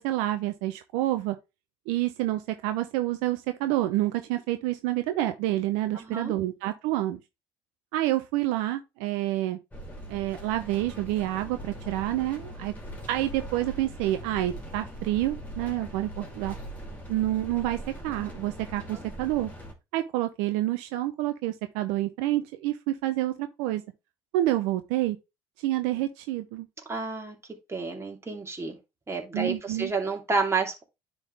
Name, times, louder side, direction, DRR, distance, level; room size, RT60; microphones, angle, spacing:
voice 1, 0.0-1.4 1.9-7.2 7.9-9.6 10.1-12.7 13.1-16.6 17.1-19.5 19.9-23.8 24.3-25.2 25.6-26.7 29.3-29.9, right 15 dB, 75° right, 0.6 m, -28 dB
voice 2, 5.9-6.3 18.9-19.0 26.9-27.4 27.7-28.8 29.1-30.8, right 4 dB, 20° right, 2.5 m, -30 dB
sound 1, 9.7-19.7, right 1 dB, 10° left, 2.7 m, -41 dB
9.9 x 3.8 x 3.3 m
hypercardioid pair, 70°, 13 cm